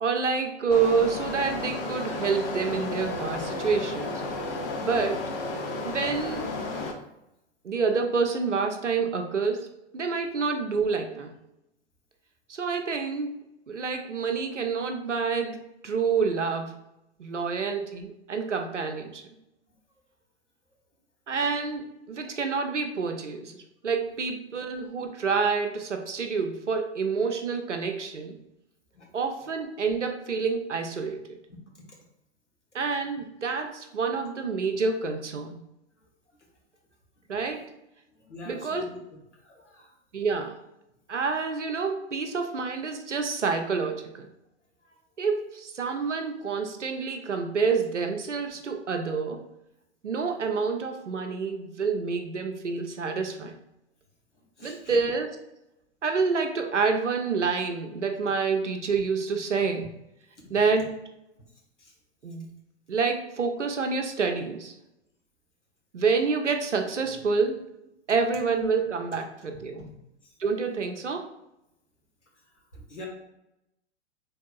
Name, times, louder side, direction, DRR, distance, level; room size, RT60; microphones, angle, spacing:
voice 1, 0.0-4.2 4.8-5.2 5.8-6.5 7.6-11.3 12.5-13.3 13.7-16.7 17.2-19.2 21.3-28.4 29.1-31.4 32.7-35.6 37.3-37.7 38.4-38.8 40.1-40.6 41.1-44.3 45.2-49.5 50.0-53.5 54.6-55.5 56.0-59.9 60.5-60.9 62.2-62.5 62.9-64.7 65.9-67.7 68.1-69.8 70.4-71.3, right 5 dB, 85° right, 5 dB, 0.7 m, -28 dB
sound 1, 0.7-6.9, left 2 dB, 20° left, 0.3 m, -33 dB
voice 2, 38.1-39.0 39.4-39.9 44.8-44.9 54.6-54.9 61.8-61.9 72.7-73.1, left 2 dB, 85° left, -1 dB, 1.2 m, -44 dB
4.4 x 3.4 x 2.3 m, 0.86 s
figure-of-eight pair, 100°, 35 cm